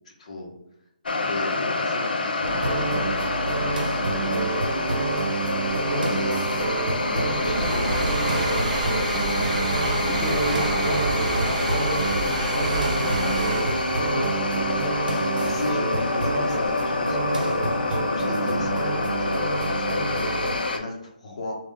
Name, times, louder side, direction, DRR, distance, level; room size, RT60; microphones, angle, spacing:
voice 1, 0.2-0.5 1.1-3.2 4.0-5.1 5.9-6.7 7.0-8.0 10.2-10.8 13.0-13.3 15.3-21.5, left 2 dB, 45° left, 0 dB, 1.0 m, -35 dB
sound 1, 1.1-20.8, left 3 dB, 85° left, 0.6 m, -27 dB
sound 2, 2.4-20.6, right 3 dB, 75° right, 0.8 m, -28 dB
sound 3, 5.7-17.8, right 4 dB, 55° right, 0.4 m, -31 dB
voice 2, 10.0-11.1 11.4-14.3, right 1 dB, ahead, -8 dB, 0.6 m, -33 dB
3.6 x 2.3 x 3.3 m, 0.86 s
hypercardioid pair, 170°, 5 cm